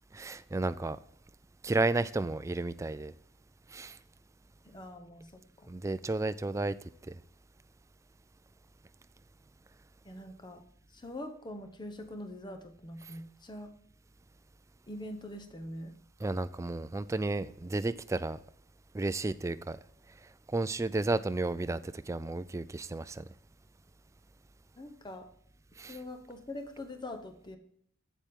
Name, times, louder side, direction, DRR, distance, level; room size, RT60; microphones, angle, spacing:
voice 1, 0.1-1.0 1.6-3.1 3.7-4.0 5.7-6.8 7.1-7.2 16.2-18.4 18.9-19.8 20.5-23.2 25.8-26.0, right 2 dB, 15° right, 0.3 m, -32 dB
voice 2, 4.6-5.7 10.0-10.6 10.9-13.7 14.9-15.9 24.8-25.3 25.9-27.6, left 1 dB, 20° left, 0.9 m, -43 dB
8.2 x 7.3 x 3.6 m
head